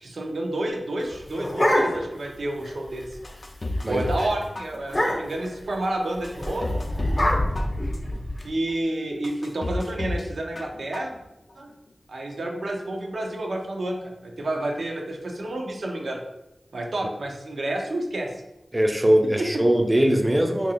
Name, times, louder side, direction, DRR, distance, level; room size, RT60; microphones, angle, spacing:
voice 1, 0.0-3.1 3.9-6.8 8.4-11.1 11.6-11.7 12.1-16.2 16.7-18.3 19.4-19.5, right 1 dB, 90° right, 1 dB, 0.5 m, -30 dB
sound 1, 1.0-2.3 2.6-2.7 3.0-3.3 3.7-3.9 4.2-4.3 4.8-5.5 6.4-8.4, left 1 dB, 35° left, 0.7 m, -25 dB
sound 2, 3.2-4.3 4.6-5.2 5.7-5.8 6.2-7.3 7.6-8.2 8.7-8.8 9.2-10.3 10.6-11.2 11.5-11.6, left 1 dB, 60° left, 0.4 m, -31 dB
voice 2, 18.7-20.7, right 1 dB, 20° right, 4 dB, 0.4 m, -21 dB
2.8 x 2.5 x 4.1 m, 0.91 s
wide cardioid pair, 60°, 0 cm